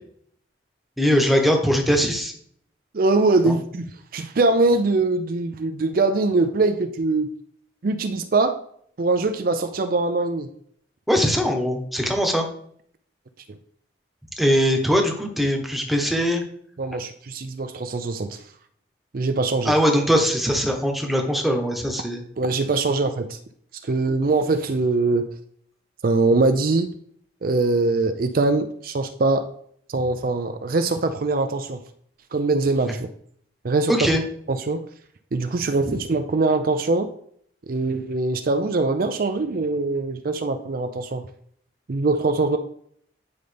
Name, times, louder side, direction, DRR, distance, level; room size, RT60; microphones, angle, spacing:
voice 1, 1.0-2.3 3.5-3.6 11.1-12.4 14.4-16.4 19.6-22.2 33.9-34.2, equal, ahead, 2 dB, 1.1 m, -21 dB
voice 2, 2.9-7.3 7.8-8.6 9.0-10.5 16.8-18.4 19.1-19.8 22.4-23.4 23.8-25.3 26.0-26.9 27.4-29.4 29.9-31.8 32.3-33.1 33.6-34.1 34.5-34.8 35.3-37.1 37.7-41.2 41.9-42.6, right 3 dB, 50° right, 8 dB, 0.5 m, -22 dB
9.5 x 5.3 x 3.4 m, 0.63 s
head